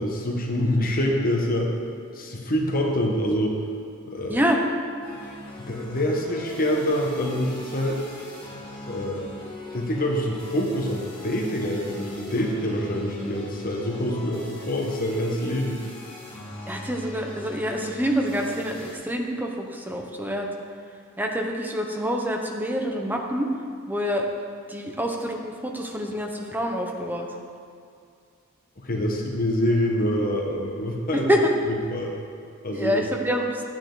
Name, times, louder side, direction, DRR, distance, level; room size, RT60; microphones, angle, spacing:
voice 1, 0.0-1.7 2.1-3.6 4.0-4.4 5.7-8.0 8.9-9.2 9.7-15.8 28.8-31.3 31.7-32.1 32.6-33.0, equal, 40° left, 0 dB, 1.2 m, -26 dB
sound 1, 5.0-18.9, left 1 dB, 25° left, 2.8 m, -41 dB
voice 2, 16.7-20.5 21.2-23.5 23.9-24.3 24.7-27.3 31.3-31.5 32.7-33.6, equal, 10° right, 1 dB, 0.9 m, -26 dB
11.5 x 9.0 x 4.0 m, 2.3 s
head